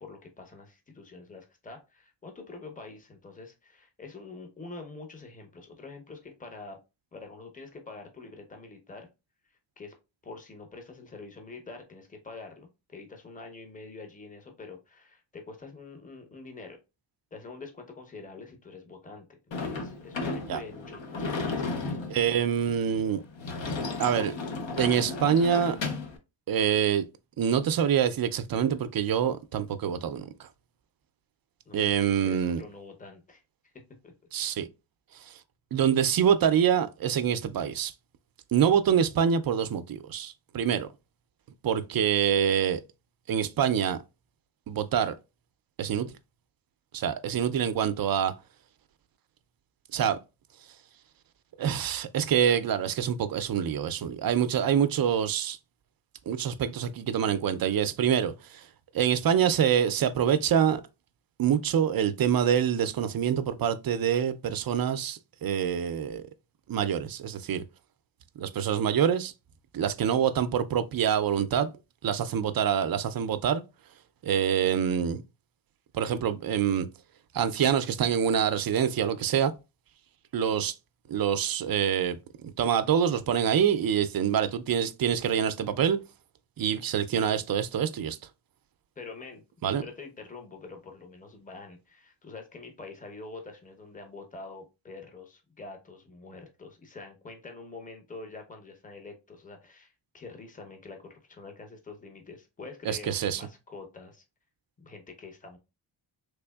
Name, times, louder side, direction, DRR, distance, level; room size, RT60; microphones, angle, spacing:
voice 1, 0.0-6.8 7.1-9.1 9.8-9.9 10.2-16.8 17.3-22.0 31.7-33.7 34.0-34.1 89.0-104.2 104.8-105.6, left 3 dB, 15° left, 0.8 m, -46 dB
Sliding door / Slam, 19.5-26.2, left 3 dB, 65° left, 0.8 m, -34 dB
voice 2, 22.1-23.2 24.0-24.3 24.8-25.8 26.5-27.1 27.4-30.5 31.7-32.6 34.3-34.7 35.3-35.4 35.7-37.9 38.5-40.9 41.6-42.8 43.3-44.0 44.7-45.1 45.8-46.1 46.9-48.3 49.9-50.2 51.6-55.6 56.3-58.6 58.9-60.8 61.4-66.2 66.7-67.6 68.4-69.3 69.7-71.7 72.0-73.6 74.2-75.2 75.9-76.9 77.3-79.5 80.3-80.7 81.1-82.2 82.6-86.0 86.6-88.2 89.6-89.8 102.9-103.4, right 8 dB, 50° right, 0.4 m, -26 dB
3.5 x 3.3 x 2.3 m
cardioid pair, 85°, 49 cm